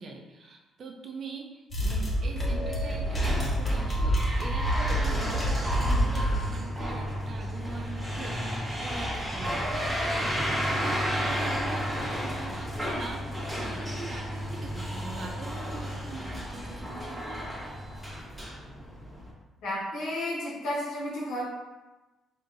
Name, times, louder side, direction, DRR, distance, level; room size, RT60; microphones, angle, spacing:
voice 1, 0.0-17.5, right 3 dB, 55° right, 2 dB, 0.6 m, -43 dB
sound 1, 1.7-6.5, equal, 30° left, 1.1 m, -27 dB
sound 2, 1.8-19.3, equal, 5° right, 1.3 m, -33 dB
voice 2, 19.6-21.4, left 1 dB, 80° left, -5 dB, 1.3 m, -32 dB
5.1 x 2.8 x 2.6 m, 1.1 s
cardioid pair, 90°, 0 cm